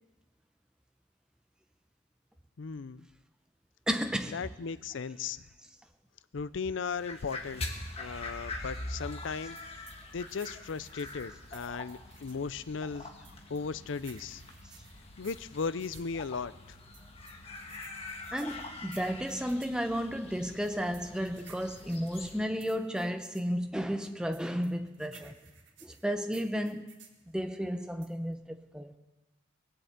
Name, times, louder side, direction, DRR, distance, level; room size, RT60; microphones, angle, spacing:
voice 1, 2.6-3.1 4.3-5.4 6.3-7.6 8.0-9.6 10.1-13.1 13.5-14.4 15.2-16.5, left 5 dB, 70° left, 0.5 m, -36 dB
voice 2, 3.9-4.4 8.0-8.4 18.3-25.4 25.8-26.9 27.3-28.9, equal, 5° right, 0.7 m, -33 dB
sound 1, 6.7-22.4, left 2 dB, 30° left, 1.5 m, -44 dB
sound 2, 9.6-12.5 13.2-16.1 16.9-19.8 20.6-23.5 24.3-27.2 28.0-28.3, right 7 dB, 65° right, 1.7 m, -56 dB
20.0 x 7.8 x 8.0 m
head